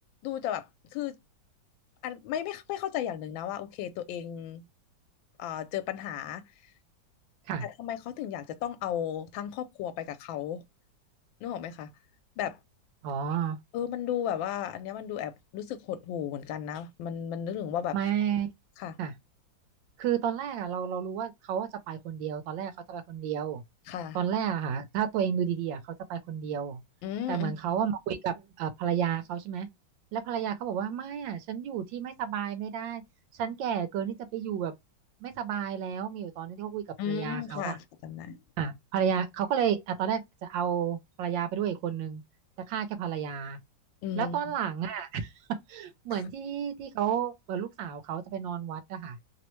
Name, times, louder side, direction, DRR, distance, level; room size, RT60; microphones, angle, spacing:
voice 1, 0.2-1.2 2.0-4.6 5.4-6.4 7.6-10.6 11.4-11.9 12.4-12.6 13.7-18.0 18.8-19.0 23.9-24.2 27.0-27.8 37.0-38.4 44.0-44.4 46.1-46.2, left 9 dB, 80° left, 1.3 m, -34 dB
voice 2, 13.0-13.6 17.9-18.5 19.0-19.1 20.0-23.6 24.1-25.8 26.1-26.8 27.3-29.7 30.1-33.0 33.4-34.7 35.2-37.8 38.6-42.2 42.7-43.6 44.2-49.2, right 8 dB, 75° right, 1.3 m, -31 dB
3.3 x 2.0 x 2.9 m
omnidirectional pair, 2.1 m